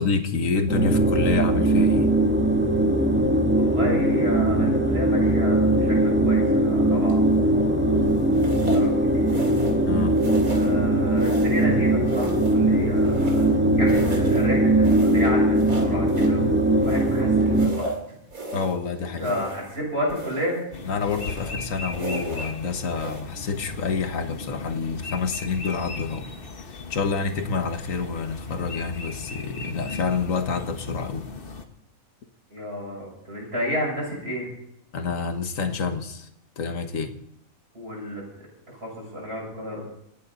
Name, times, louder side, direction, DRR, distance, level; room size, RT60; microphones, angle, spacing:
voice 1, 0.0-2.1 9.8-10.2 18.5-19.3 20.9-26.3 26.9-31.3 34.9-36.3 36.6-37.1, left 5 dB, 70° left, 1.7 m, -28 dB
sound 1, 0.7-17.7, right 1 dB, 10° right, 1.7 m, -20 dB
voice 2, 3.6-8.0 8.6-9.5 10.5-13.5 13.8-17.9 19.0-20.6 32.5-34.5 37.7-39.8, equal, 45° right, 7.0 m, -31 dB
sound 2, 7.1-7.4 8.3-8.9 9.3-9.9 10.1-10.8 11.2-11.7 12.0-13.6 13.8-14.5 14.8-16.4 16.8-18.8 19.1-19.8 20.1-20.6 21.0-21.6 21.9-22.5 22.9-23.2, right 2 dB, 85° right, 2.8 m, -36 dB
sound 3, 20.7-31.7, left 4 dB, 45° left, 1.3 m, -37 dB
27.5 x 9.4 x 4.0 m
omnidirectional pair, 1.4 m